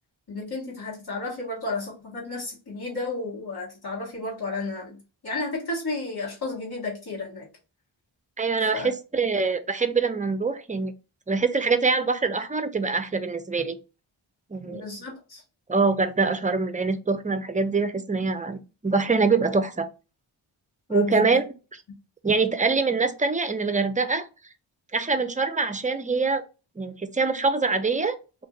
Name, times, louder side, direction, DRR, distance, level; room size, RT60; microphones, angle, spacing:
voice 1, 0.3-7.4 8.7-8.9 14.6-15.4 20.9-21.3, left 3 dB, 50° left, 1.5 m, -32 dB
voice 2, 8.4-10.9 11.3-13.8 14.5-14.8 15.7-19.9 20.9-21.4 22.2-24.3 24.9-26.4 26.8-28.2, right 4 dB, 15° right, 0.4 m, -24 dB
2.6 x 2.5 x 3.8 m
wide cardioid pair, 45°, 49 cm